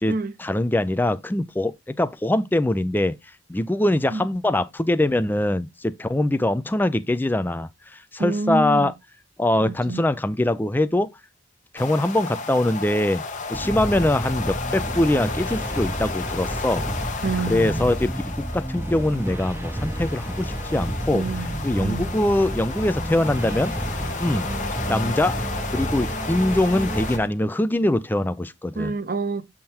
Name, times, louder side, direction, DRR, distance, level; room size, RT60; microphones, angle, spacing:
voice 1, 0.0-3.2 3.5-8.9 9.4-11.1 11.7-13.2 13.5-16.8 17.5-21.3 21.6-23.7 24.2-24.5 24.9-25.3 25.7-28.9, left 1 dB, 10° left, 0.4 m, -23 dB
voice 2, 8.2-8.9 9.6-10.0 17.2-17.9 21.1-22.1 28.8-29.4, right 3 dB, 50° right, 0.7 m, -28 dB
sound 1, 11.8-27.2, left 4 dB, 40° left, 0.9 m, -33 dB
sound 2, 13.5-27.3, right 1 dB, 10° right, 0.7 m, -30 dB
7.7 x 3.7 x 4.3 m
head